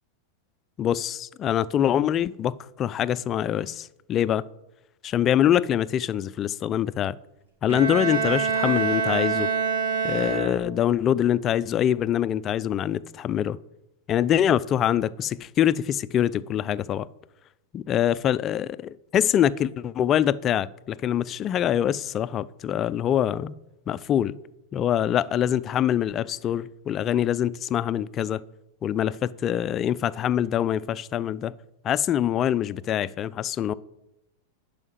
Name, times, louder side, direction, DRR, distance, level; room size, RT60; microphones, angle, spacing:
voice 1, 0.8-4.4 5.0-7.2 7.6-9.5 10.0-13.6 14.1-17.1 17.7-23.5 23.9-24.3 24.7-28.4 28.8-31.5 31.8-33.7, left 10 dB, 30° left, 0.4 m, -24 dB
Bowed string instrument, 7.7-10.9, right 6 dB, 70° right, 2.6 m, -26 dB
11.0 x 5.1 x 7.7 m
figure-of-eight pair, 90°, 0 cm